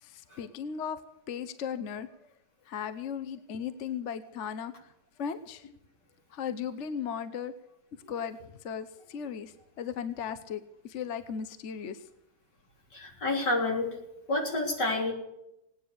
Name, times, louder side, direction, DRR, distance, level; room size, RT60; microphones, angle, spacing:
voice 1, 0.0-1.0 1.3-2.1 2.7-4.9 5.2-5.7 6.3-7.5 8.1-12.0, left 7 dB, 50° left, 11 dB, 1.1 m, -36 dB
voice 2, 12.9-14.0 14.3-15.1, left 2 dB, 75° left, 1 dB, 4.2 m, -29 dB
18.5 x 9.9 x 6.7 m, 0.86 s
omnidirectional pair, 1.8 m